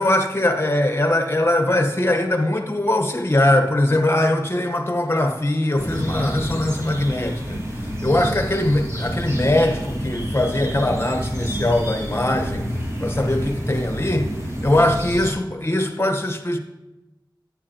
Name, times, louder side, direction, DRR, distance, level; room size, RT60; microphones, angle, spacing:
voice 1, 0.0-7.6 8.0-12.7 13.0-14.3 14.6-16.6, left 1 dB, 30° left, 5 dB, 1.1 m, -21 dB
sound 1, 5.8-15.3, equal, 35° right, 1.9 m, -28 dB
11.0 x 9.2 x 2.9 m, 1.0 s
wide cardioid pair, 45°, 8 cm